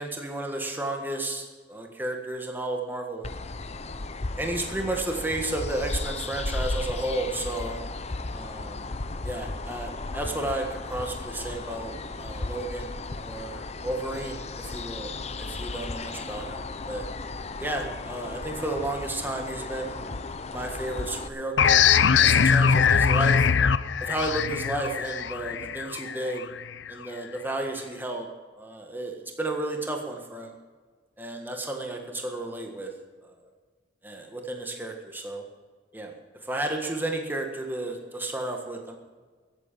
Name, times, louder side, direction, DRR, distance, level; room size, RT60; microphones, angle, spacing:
voice 1, 0.0-3.3 4.4-7.8 8.3-8.9 9.2-12.9 13.2-15.1 15.4-17.1 17.6-20.1 20.5-23.5 24.0-26.5 26.9-28.3 28.6-30.5 31.2-32.9 33.2-33.5 34.0-35.4 35.9-36.1 36.4-39.0, right 2 dB, 10° right, 2 dB, 1.6 m, -32 dB
sound 1, 3.2-21.3, left 3 dB, 35° left, 0.7 m, -35 dB
sound 2, 21.6-26.9, left 7 dB, 85° left, 0.5 m, -21 dB
14.5 x 9.0 x 7.3 m, 1.4 s
head